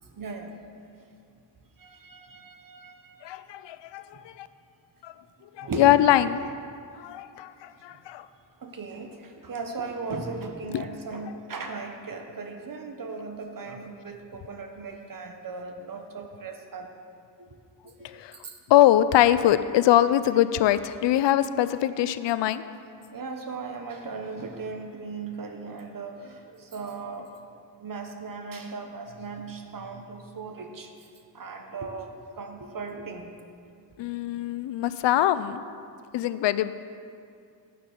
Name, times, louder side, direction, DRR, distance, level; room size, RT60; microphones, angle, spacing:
voice 1, 0.1-0.6 1.8-3.3 5.6-6.0 8.6-16.9 17.4-17.5 17.8-18.1 18.4-18.6 23.1-27.4 27.8-30.9 31.3-33.4, right 4 dB, 45° right, 4 dB, 1.0 m, -37 dB
voice 2, 3.2-4.5 5.0-5.1 5.6-6.5 7.0-8.3 10.7-10.9 18.0-18.3 18.7-22.6 34.0-35.6 36.1-36.7, left 12 dB, 70° left, 14 dB, 0.5 m, -23 dB
9.4 x 6.0 x 6.8 m, 2.4 s
cardioid pair, 85°, 44 cm